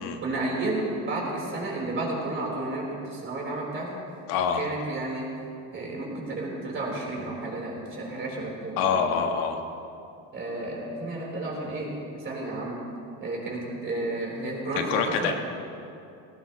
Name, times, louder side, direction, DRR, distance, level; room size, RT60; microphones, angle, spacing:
voice 1, 0.2-4.0 4.5-5.3 5.7-8.8 10.3-12.8 13.2-15.3, right 2 dB, 30° right, -3 dB, 4.1 m, -32 dB
voice 2, 4.3-4.7 8.8-9.6 14.7-15.3, left 6 dB, 85° left, 4 dB, 1.5 m, -25 dB
18.5 x 16.0 x 3.1 m, 2.6 s
cardioid pair, 125°, 38 cm